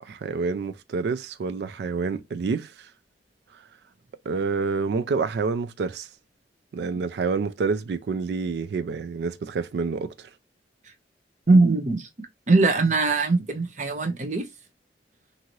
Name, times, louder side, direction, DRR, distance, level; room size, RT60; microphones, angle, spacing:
voice 1, 0.0-2.9 4.3-6.1 6.7-10.3, right 4 dB, 65° right, 0.3 m, -28 dB
voice 2, 11.5-12.1 12.5-14.5, right 3 dB, 45° right, 0.7 m, -21 dB
2.8 x 2.6 x 3.0 m
head